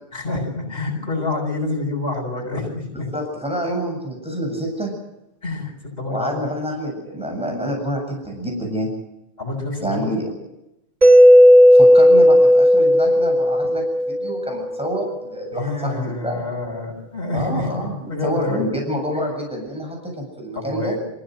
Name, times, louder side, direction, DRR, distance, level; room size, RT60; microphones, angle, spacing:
voice 1, 0.1-3.1 5.4-6.5 9.4-10.3 15.5-18.6 20.5-21.0, left 2 dB, 60° left, -5 dB, 7.4 m, -27 dB
voice 2, 3.1-4.9 6.1-8.9 9.8-10.3 11.7-16.4 17.3-20.9, equal, 5° right, 1 dB, 7.9 m, -27 dB
Mallet percussion, 11.0-14.8, equal, 40° right, 3.3 m, -12 dB
28.5 x 16.5 x 7.9 m, 0.89 s
omnidirectional pair, 1.1 m